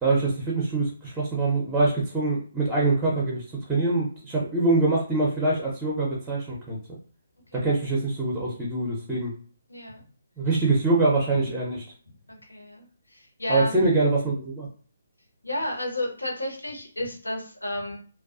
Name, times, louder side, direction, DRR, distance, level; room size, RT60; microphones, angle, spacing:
voice 1, 0.0-7.0 7.5-9.3 10.4-11.9 13.5-14.7, right 2 dB, 10° right, -4 dB, 0.6 m, -24 dB
voice 2, 9.7-10.0 12.3-13.9 15.4-18.0, left 1 dB, 80° left, 0 dB, 0.9 m, -32 dB
2.3 x 2.3 x 2.4 m, 0.41 s
figure-of-eight pair, 140°, 0 cm